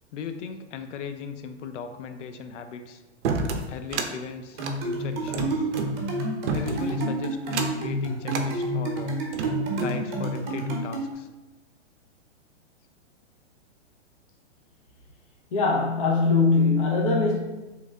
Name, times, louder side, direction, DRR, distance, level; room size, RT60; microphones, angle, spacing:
voice 1, 0.1-3.0 3.7-5.7 6.5-7.4 7.8-9.2 9.7-11.3, left 6 dB, 85° left, 0.5 m, -37 dB
sound 1, 3.2-4.1 4.5-5.9 6.5-7.0 7.4-7.9 8.3-8.5 9.1-10.0, right 5 dB, 70° right, 0.5 m, -30 dB
sound 2, 4.6-11.1, right 1 dB, 40° right, 0.8 m, -29 dB
voice 2, 15.5-17.4, left 4 dB, 30° left, 0.4 m, -21 dB
3.2 x 2.1 x 3.5 m
hypercardioid pair, 160°, 35 cm